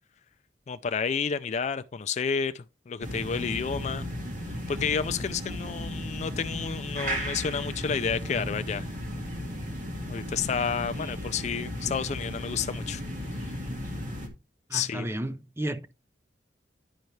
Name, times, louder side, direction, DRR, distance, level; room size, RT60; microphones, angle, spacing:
voice 1, 0.7-4.1 4.5-8.9 10.1-13.0 13.3-13.6 14.7-15.1, left 6 dB, 40° left, 0.3 m, -30 dB
sound 1, 3.0-14.3, equal, 45° right, 1.8 m, -35 dB
voice 2, 14.7-15.9, right 1 dB, 15° right, 0.5 m, -33 dB
10.5 x 5.4 x 3.2 m
head